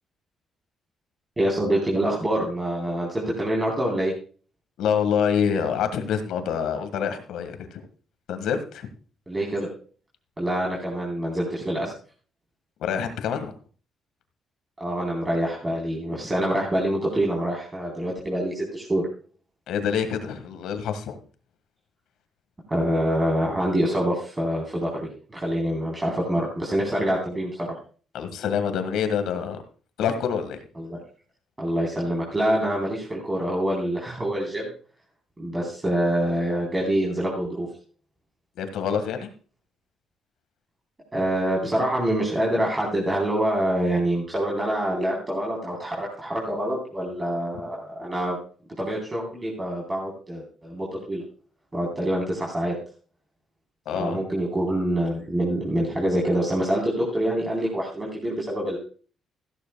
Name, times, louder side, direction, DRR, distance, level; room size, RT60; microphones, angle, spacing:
voice 1, 1.4-4.1 9.3-9.7 10.4-11.9 14.8-19.1 22.7-27.8 30.8-31.0 31.6-34.7 35.4-37.7 41.1-48.4 48.8-51.2 51.7-52.7 53.9-58.8, right 1 dB, 20° right, -3 dB, 3.9 m, -26 dB
voice 2, 4.8-7.8 8.3-8.9 12.8-13.5 19.7-21.2 28.1-29.6 30.0-30.7 38.6-39.3 53.8-54.2, left 7 dB, 85° left, 8 dB, 1.7 m, -26 dB
15.0 x 12.5 x 2.3 m, 0.39 s
cardioid pair, 90°, 0 cm